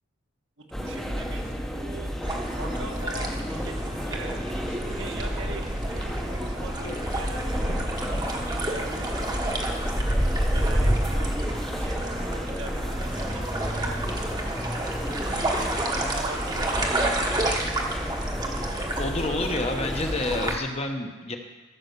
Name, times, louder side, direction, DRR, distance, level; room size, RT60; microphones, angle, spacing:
voice 1, 0.6-2.1 2.5-3.8 4.1-9.8 10.4-14.4 14.9-17.5, right 2 dB, 60° right, 2 dB, 1.5 m, -42 dB
sound 1, 0.7-20.6, equal, ahead, 0.8 m, -32 dB
sound 2, 2.2-20.5, right 1 dB, 20° right, 1.1 m, -29 dB
voice 2, 18.9-21.4, left 2 dB, 30° left, 4 dB, 0.9 m, -29 dB
15.0 x 5.8 x 6.7 m, 1.3 s
head